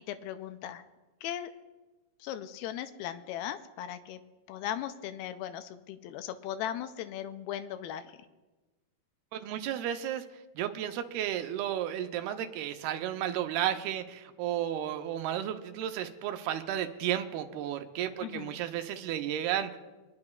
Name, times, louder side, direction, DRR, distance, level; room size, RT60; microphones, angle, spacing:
voice 1, 0.1-0.8 1.2-1.5 2.2-4.2 4.5-8.1 18.2-18.5, left 11 dB, 80° left, 10 dB, 2.5 m, -38 dB
voice 2, 9.3-10.3 10.6-19.8, right 11 dB, 90° right, 7 dB, 2.7 m, -33 dB
25.0 x 10.5 x 2.4 m, 1.2 s
omnidirectional pair, 4.4 m